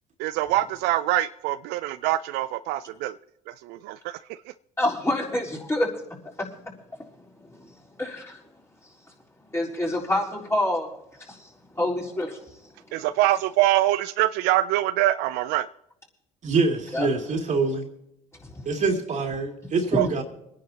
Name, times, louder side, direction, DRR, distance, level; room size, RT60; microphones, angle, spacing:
voice 1, 0.2-3.2 3.5-4.2 12.9-15.7 20.0-20.1, right 15 dB, 75° right, 0.4 m, -24 dB
voice 2, 4.8-5.9 6.4-6.5 7.4-7.7 8.0-8.4 9.5-10.9 11.2-11.5 11.7-12.4 16.9-17.1 18.4-18.6, left 1 dB, 15° left, 3.9 m, -27 dB
voice 3, 16.4-17.9 18.6-20.2, right 4 dB, 45° right, 2.7 m, -25 dB
26.0 x 10.5 x 2.9 m
supercardioid pair, 75°, 17 cm